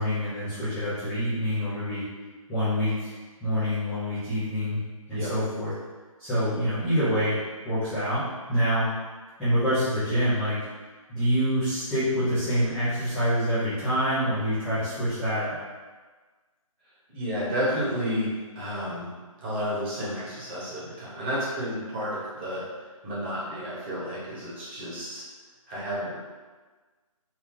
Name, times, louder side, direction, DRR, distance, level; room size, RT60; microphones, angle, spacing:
voice 1, 0.0-2.0 2.5-3.1 3.4-4.8 5.1-5.7 6.2-7.4 7.6-8.9 9.4-10.6 11.1-15.5, equal, ahead, -21 dB, 0.4 m, -26 dB
voice 2, 17.1-18.3 18.6-19.1 19.4-22.6 23.0-25.2 25.7-26.2, equal, 20° right, -7 dB, 1.0 m, -31 dB
4.8 x 2.3 x 3.6 m, 1.4 s
figure-of-eight pair, 160°, 18 cm